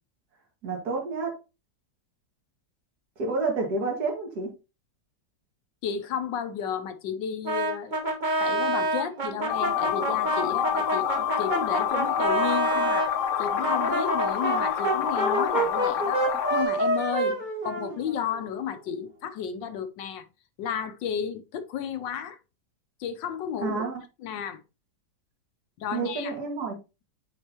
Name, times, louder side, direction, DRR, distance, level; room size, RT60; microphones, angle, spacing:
voice 1, 0.6-1.3 3.2-4.5 23.6-24.0 25.9-26.7, right 4 dB, 55° right, 2.5 m, -29 dB
voice 2, 5.8-7.9 8.4-11.1 11.4-13.1 13.4-16.2 16.5-17.4 17.6-20.2 20.6-22.4 23.0-23.8 24.2-24.6 25.8-26.3, left 8 dB, 75° left, 1.4 m, -32 dB
Brass instrument, 7.4-13.1 13.6-18.4, right 2 dB, 30° right, 1.1 m, -28 dB
sound 1, 9.5-16.6, left 9 dB, 55° left, 1.0 m, -27 dB
8.9 x 4.0 x 2.9 m
omnidirectional pair, 2.0 m